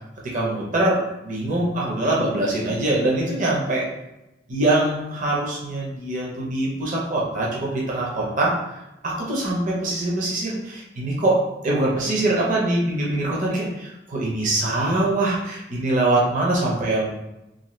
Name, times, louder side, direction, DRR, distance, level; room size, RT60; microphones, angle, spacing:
voice 1, 0.2-3.9 4.5-8.5 9.0-17.1, right 2 dB, 45° right, -4 dB, 0.6 m, -23 dB
2.6 x 2.6 x 3.1 m, 0.95 s
head